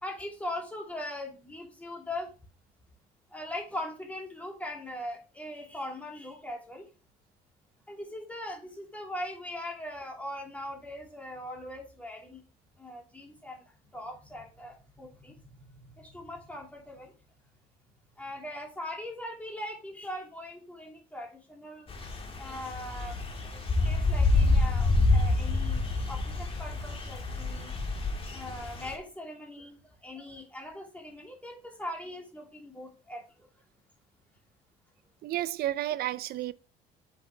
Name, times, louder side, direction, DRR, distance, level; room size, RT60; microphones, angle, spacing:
voice 1, 0.0-2.3 3.3-6.8 7.9-12.4 12.8-13.6 13.9-15.4 15.8-17.1 18.2-21.9 22.4-23.2 23.5-27.7 28.3-33.5, left 1 dB, 10° left, 2.6 m, -40 dB
sound 1, 21.9-28.9, left 3 dB, 35° left, 1.8 m, -27 dB
voice 2, 35.2-36.5, right 13 dB, 65° right, 0.5 m, -31 dB
7.1 x 6.0 x 3.3 m
cardioid pair, 110°, 17 cm